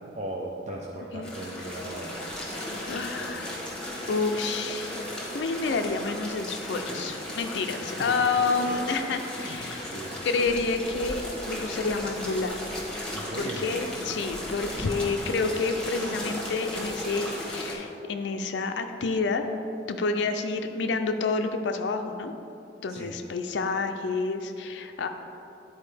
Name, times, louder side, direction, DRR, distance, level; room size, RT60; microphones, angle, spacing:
voice 1, 0.1-2.3 2.9-3.5 7.8-8.3 9.4-10.2 13.1-13.7 14.9-15.0 22.9-23.2, right 1 dB, 40° right, -2 dB, 0.5 m, -38 dB
sound 1, 1.2-17.7, left 1 dB, 5° left, 1.2 m, -36 dB
voice 2, 2.8-3.6 4.1-5.0 5.3-9.9 10.2-12.6 13.4-19.4 19.9-22.3 22.8-25.1, left 4 dB, 70° left, 6 dB, 0.4 m, -29 dB
10.0 x 4.3 x 3.3 m, 2.8 s
head